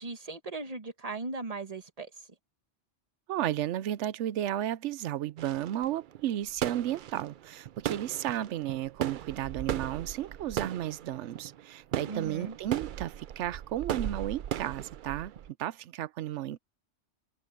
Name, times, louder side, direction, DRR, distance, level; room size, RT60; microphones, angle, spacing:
voice 1, 0.0-2.1 12.1-12.6, right 3 dB, 30° right, 1.5 m, -38 dB
voice 2, 3.3-15.3 15.6-16.6, right 12 dB, 85° right, 0.9 m, -33 dB
sound 1, 5.4-15.5, right 10 dB, 60° right, 0.6 m, -37 dB
omnidirectional pair, 1.2 m